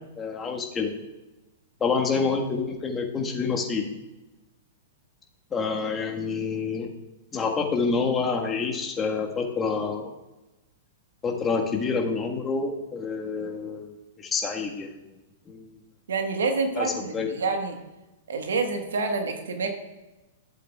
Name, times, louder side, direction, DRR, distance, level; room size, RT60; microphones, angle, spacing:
voice 1, 0.2-0.9 1.8-3.8 5.5-6.9 7.3-10.1 11.2-15.1 15.5-15.7 16.8-16.9 17.1-17.3, left 4 dB, 20° left, 0 dB, 1.6 m, -27 dB
voice 2, 16.1-17.8 18.3-19.7, right 4 dB, 75° right, 5 dB, 1.4 m, -27 dB
14.5 x 7.8 x 2.4 m, 1.0 s
hypercardioid pair, 110°, 0 cm